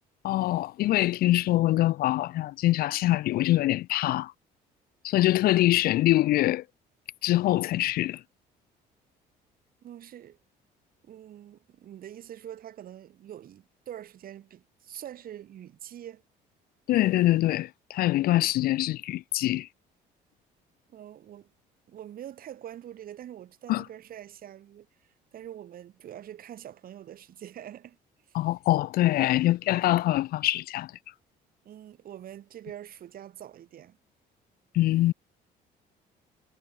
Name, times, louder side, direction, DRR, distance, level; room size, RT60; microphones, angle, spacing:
voice 1, 0.2-4.3 5.0-6.6 7.2-8.2 16.9-19.7 23.7-23.8 28.3-30.9 34.7-35.1, left 16 dB, 65° left, 0.4 m, -24 dB
voice 2, 9.8-10.4 11.0-16.2 20.9-21.5 21.9-24.9 25.3-28.0 28.3-28.4 31.7-34.0, right 11 dB, 60° right, 5.5 m, -44 dB
cardioid pair, 110°, 17 cm